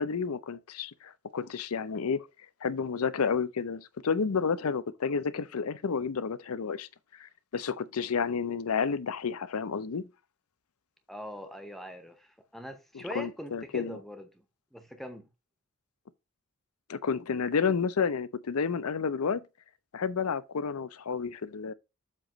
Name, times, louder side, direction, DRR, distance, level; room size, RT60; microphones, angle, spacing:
voice 1, 0.0-2.3 2.6-6.9 7.2-10.1 12.9-14.0 16.9-19.4 19.9-21.7, left 5 dB, 80° left, 0.6 m, -30 dB
voice 2, 11.1-14.3 14.7-15.3, equal, ahead, 0.7 m, -42 dB
7.6 x 3.0 x 6.1 m
head